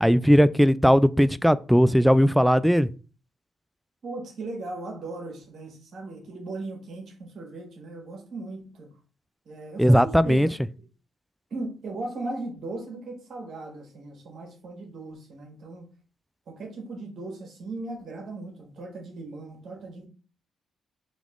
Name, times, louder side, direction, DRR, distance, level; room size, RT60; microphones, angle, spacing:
voice 1, 0.0-2.9 9.8-10.5, equal, ahead, 0.3 m, -18 dB
voice 2, 4.0-8.9 9.4-10.5 11.5-15.8 16.5-20.1, right 2 dB, 65° right, 1.6 m, -37 dB
4.0 x 3.0 x 3.6 m
supercardioid pair, 55°, 0 cm